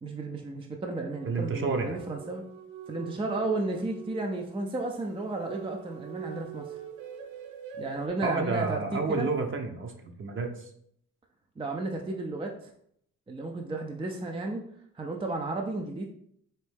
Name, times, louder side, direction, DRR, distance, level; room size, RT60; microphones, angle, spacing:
voice 1, 0.0-2.4 2.9-6.8 7.8-9.3 11.6-12.7 13.3-14.6 14.9-16.0, right 2 dB, 20° right, 2 dB, 0.4 m, -33 dB
sound 1, 1.1-8.1, right 7 dB, 75° right, 0.6 m, -44 dB
voice 2, 1.2-2.0 8.2-10.7, right 4 dB, 40° right, 4 dB, 0.8 m, -30 dB
4.2 x 2.6 x 3.4 m, 0.69 s
cardioid pair, 90°, 30 cm